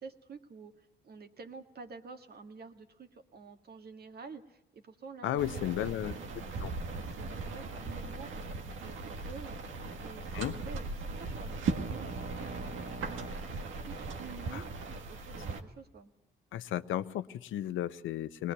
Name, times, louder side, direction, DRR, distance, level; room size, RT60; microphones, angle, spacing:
voice 1, 0.0-9.6 10.0-16.1, right 5 dB, 50° right, 6 dB, 1.9 m, -50 dB
voice 2, 5.2-6.1 6.6-6.7 10.3-10.5 14.5-14.6 16.5-18.5, left 12 dB, 80° left, 14 dB, 0.7 m, -34 dB
sound 1, 5.4-15.6, right 4 dB, 75° right, 1.7 m, -38 dB
20.5 x 20.0 x 8.1 m, 0.82 s
cardioid pair, 90°, 20 cm